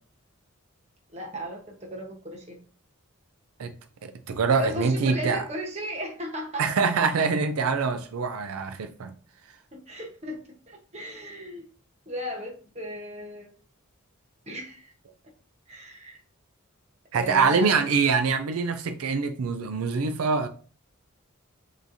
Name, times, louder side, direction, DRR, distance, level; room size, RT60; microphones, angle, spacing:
voice 1, 1.1-2.6 4.5-6.9 9.7-10.4 10.7-11.6 12.1-13.5 14.5-14.9 15.7-16.2 17.1-17.9, equal, 30° right, 1.1 m, -36 dB
voice 2, 4.0-5.4 6.6-9.1 17.1-20.5, right 5 dB, 85° right, 0.5 m, -24 dB
6.1 x 3.1 x 2.7 m
head